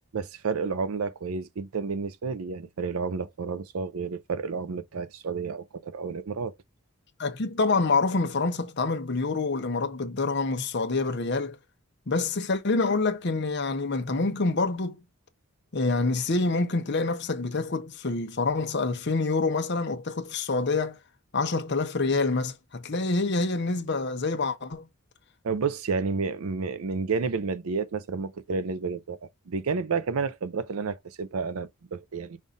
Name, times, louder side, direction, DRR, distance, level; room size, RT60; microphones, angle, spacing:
voice 1, 0.1-6.5 25.4-29.2 29.5-32.4, right 4 dB, 75° right, 0.5 m, -30 dB
voice 2, 7.2-11.6 12.1-15.0 15.7-21.0 21.3-24.9, left 3 dB, 50° left, 0.8 m, -27 dB
5.5 x 2.5 x 3.9 m
head